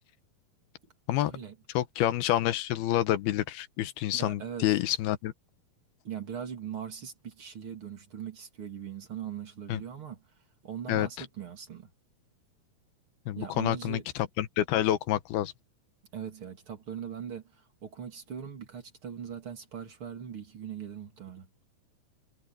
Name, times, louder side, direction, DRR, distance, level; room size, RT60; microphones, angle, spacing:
voice 1, 1.7-5.3 9.7-9.8 10.9-11.3 13.3-15.5, left 13 dB, 85° left, 3.0 m, -28 dB
voice 2, 4.1-4.8 6.0-10.2 10.6-11.9 13.4-14.1 16.1-21.5, right 8 dB, 35° right, 3.1 m, -40 dB
omnidirectional pair, 4.4 m